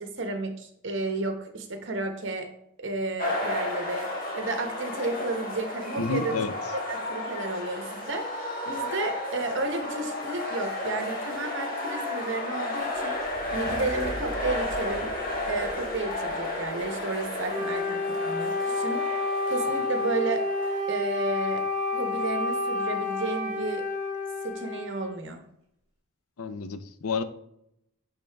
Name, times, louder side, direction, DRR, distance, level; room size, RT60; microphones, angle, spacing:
voice 1, 0.0-2.5 2.8-4.1 4.4-6.4 6.9-15.1 15.5-19.1 19.5-20.5 20.9-21.7 21.9-23.8 24.4-25.4, right 2 dB, 55° right, 5 dB, 1.0 m, -32 dB
sound 1, 3.2-20.8, left 1 dB, 40° left, 1.5 m, -33 dB
voice 2, 6.0-6.5 26.4-27.2, left 4 dB, 85° left, 11 dB, 0.6 m, -30 dB
sound 2, 12.9-17.4, equal, 5° left, 1.7 m, -43 dB
Wind instrument woodwind instrument, 17.5-25.2, left 2 dB, 30° right, 2.6 m, -29 dB
10.5 x 3.7 x 3.4 m, 0.77 s
head